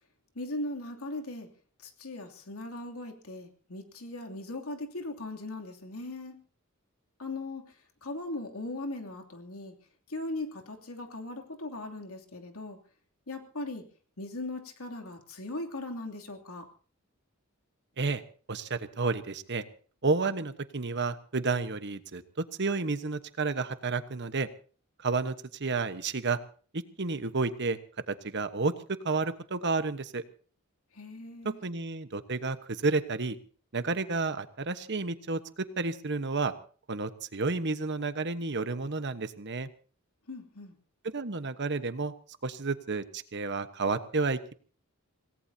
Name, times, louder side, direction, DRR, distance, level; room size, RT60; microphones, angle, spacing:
voice 1, 0.3-1.5 1.8-6.4 7.2-7.6 8.0-9.7 10.1-12.8 13.3-13.8 14.2-16.7 30.9-31.6 40.3-40.7, left 2 dB, 85° left, 3 dB, 2.9 m, -39 dB
voice 2, 18.5-19.6 20.0-22.2 22.6-24.5 25.0-25.3 25.6-26.4 27.0-27.8 28.1-28.7 29.0-30.2 31.4-33.4 33.7-36.5 36.9-39.7 41.0-42.1 42.4-44.5, right 3 dB, 55° right, 10 dB, 1.2 m, -31 dB
26.5 x 18.0 x 2.8 m, 0.42 s
head